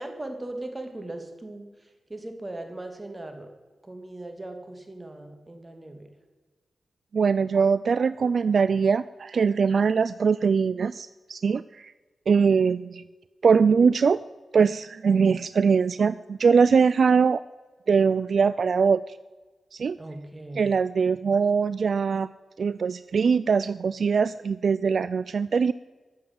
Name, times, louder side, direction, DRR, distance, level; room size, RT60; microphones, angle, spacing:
voice 1, 0.0-1.7 2.1-3.5 3.8-6.1 20.0-20.8, right 2 dB, 25° right, 5 dB, 2.8 m, -38 dB
voice 2, 7.1-11.9 12.3-13.0 13.4-14.2 14.5-17.4 17.9-19.0 19.7-20.0 20.6-22.3 22.6-25.7, right 5 dB, 70° right, 16 dB, 0.3 m, -22 dB
12.0 x 7.6 x 9.5 m, 1.3 s
cardioid pair, 45°, 0 cm